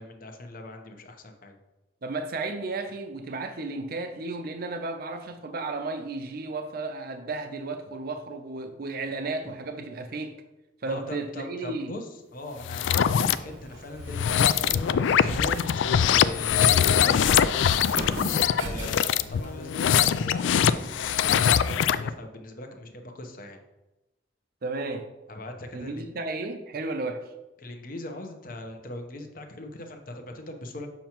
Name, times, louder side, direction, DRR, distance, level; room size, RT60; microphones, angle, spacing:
voice 1, 0.0-1.6 10.9-17.6 18.4-23.6 25.3-26.1 27.6-30.9, left 1 dB, 50° left, 4 dB, 0.9 m, -40 dB
voice 2, 2.0-10.3 10.8-11.9 24.6-25.1 25.7-27.2, right 3 dB, 55° right, 6 dB, 0.5 m, -33 dB
sound 1, 12.6-13.4 14.0-22.1, left 8 dB, 80° left, 0.3 m, -22 dB
Walk footsteps, 13.1-21.2, right 1 dB, 70° right, 0.9 m, -39 dB
7.1 x 5.8 x 3.0 m, 0.99 s
head